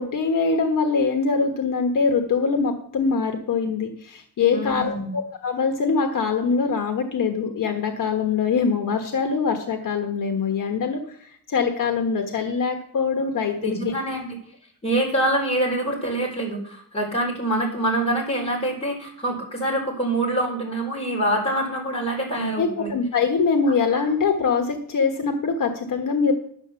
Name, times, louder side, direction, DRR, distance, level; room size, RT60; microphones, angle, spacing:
voice 1, 0.0-13.9 22.3-26.3, left 5 dB, 65° left, 4 dB, 1.4 m, -23 dB
voice 2, 4.5-5.1 13.6-14.4 14.8-22.9 23.9-24.0, right 1 dB, 20° left, -2 dB, 4.4 m, -25 dB
11.5 x 6.8 x 6.9 m, 0.65 s
wide cardioid pair, 175°, 35 cm